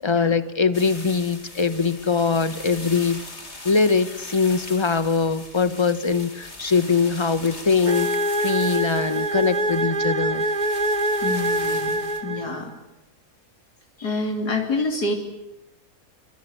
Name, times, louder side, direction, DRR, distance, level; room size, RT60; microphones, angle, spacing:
voice 1, 0.0-3.2 3.6-8.1 8.4-10.5 14.0-14.1, left 5 dB, 20° left, 12 dB, 1.1 m, -22 dB
sound 1, 0.7-12.2, left 2 dB, 40° left, 4.0 m, -40 dB
sound 2, 7.9-12.7, right 1 dB, 30° right, 1.2 m, -24 dB
voice 2, 11.2-12.7 14.0-15.1, left 2 dB, 80° left, 3 dB, 3.9 m, -27 dB
27.0 x 25.5 x 8.4 m, 0.87 s
omnidirectional pair, 1.7 m